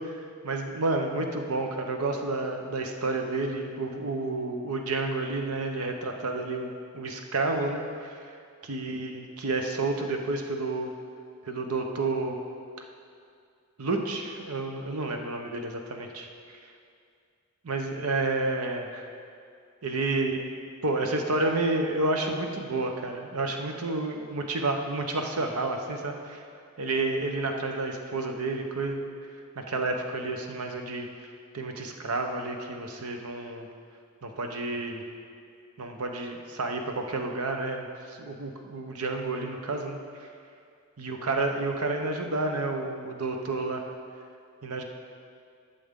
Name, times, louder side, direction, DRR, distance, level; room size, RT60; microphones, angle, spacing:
voice 1, 0.0-8.2 8.6-10.9 11.4-12.4 12.8-12.9 13.8-16.6 17.6-19.1 19.8-20.4 20.8-26.4 26.8-29.0 29.6-31.1 31.5-33.7 34.2-35.0 35.8-40.3 41.0-43.9 44.6-44.8, right 2 dB, 75° right, 4 dB, 0.9 m, -30 dB
12.5 x 6.9 x 3.7 m, 2.3 s
head